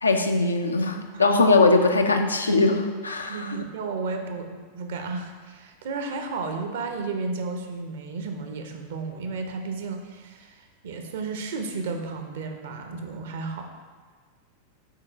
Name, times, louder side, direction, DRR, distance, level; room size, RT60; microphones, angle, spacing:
voice 1, 0.0-3.6, left 3 dB, 75° left, 5 dB, 0.5 m, -21 dB
voice 2, 3.3-13.7, right 4 dB, 55° right, 4 dB, 0.7 m, -33 dB
4.5 x 4.3 x 4.9 m, 1.5 s
figure-of-eight pair, 90°, 0 cm